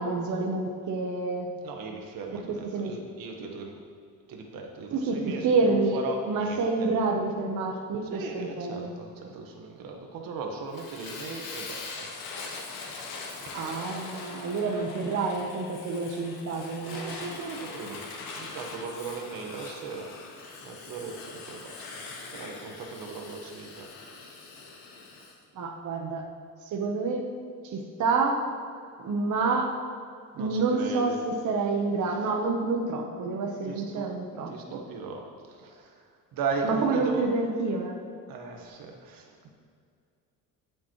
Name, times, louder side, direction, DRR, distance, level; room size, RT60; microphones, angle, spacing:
voice 1, 0.0-1.5 2.3-2.9 4.9-8.9 13.5-17.2 25.6-26.3 26.6-27.3 27.6-28.4 29.0-29.7 30.4-34.8 36.6-38.0, right 3 dB, 60° right, 1 dB, 1.2 m, -28 dB
voice 2, 1.6-3.8 4.3-6.9 8.0-12.1 13.4-13.5 16.8-18.0 18.3-20.1 20.6-21.8 22.1-23.9 30.3-31.2 33.6-34.1 34.5-36.0 36.3-37.3 38.3-39.5, right 4 dB, 85° right, 2 dB, 1.5 m, -37 dB
Fire, 10.7-25.3, left 4 dB, 90° left, 1.9 m, -42 dB
19.0 x 7.1 x 3.2 m, 2.3 s
cardioid pair, 120°, 34 cm